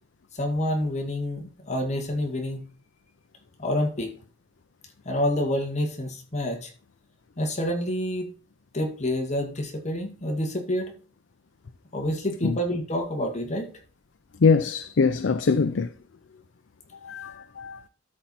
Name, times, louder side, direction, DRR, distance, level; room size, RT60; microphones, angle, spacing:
voice 1, 0.3-2.6 3.6-4.1 5.1-6.7 7.4-8.3 8.7-10.9 11.9-13.7, left 1 dB, 40° left, 2.0 m, -28 dB
voice 2, 14.4-15.9 17.0-17.8, left 4 dB, 70° left, 0.6 m, -23 dB
13.0 x 4.6 x 4.2 m
head